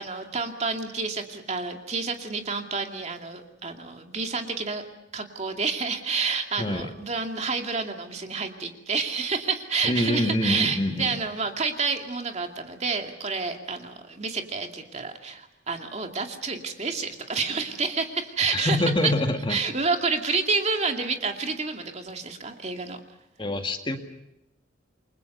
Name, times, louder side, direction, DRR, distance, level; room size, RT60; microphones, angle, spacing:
voice 1, 0.0-4.8 5.1-19.1 19.5-23.0, right 4 dB, 35° right, 4 dB, 2.5 m, -29 dB
voice 2, 6.6-6.9 9.8-11.2 18.5-19.6 23.4-24.0, left 1 dB, 25° left, 5 dB, 2.0 m, -25 dB
29.5 x 23.5 x 6.7 m, 0.84 s
head